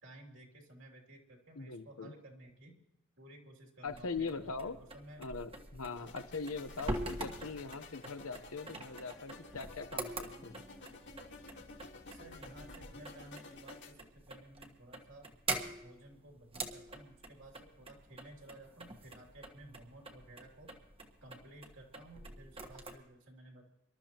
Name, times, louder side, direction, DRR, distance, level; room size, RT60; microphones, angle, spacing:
voice 1, 0.0-2.8 3.2-5.3 5.9-6.2 12.1-15.3 15.6-20.7 21.2-23.7, right 1 dB, 60° right, 0 dB, 3.0 m, -55 dB
voice 2, 1.5-2.1 3.8-4.8 5.2-10.6, left 4 dB, 85° left, 9 dB, 1.0 m, -41 dB
sound 1, 3.9-22.9, right 2 dB, 25° right, 1.3 m, -45 dB
sound 2, 5.9-13.9, left 3 dB, 55° left, 2.2 m, -53 dB
25.0 x 12.5 x 3.0 m, 0.89 s
head